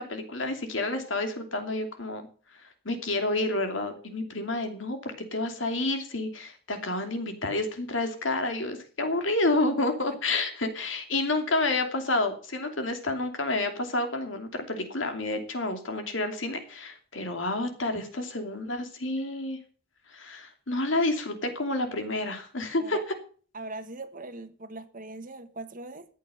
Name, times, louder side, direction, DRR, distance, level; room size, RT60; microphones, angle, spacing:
voice 1, 0.0-2.2 2.8-19.6 20.1-23.0, left 2 dB, 70° left, 6 dB, 2.8 m, -29 dB
voice 2, 23.5-26.0, right 2 dB, 45° right, 10 dB, 1.4 m, -41 dB
13.5 x 8.8 x 6.5 m, 0.41 s
head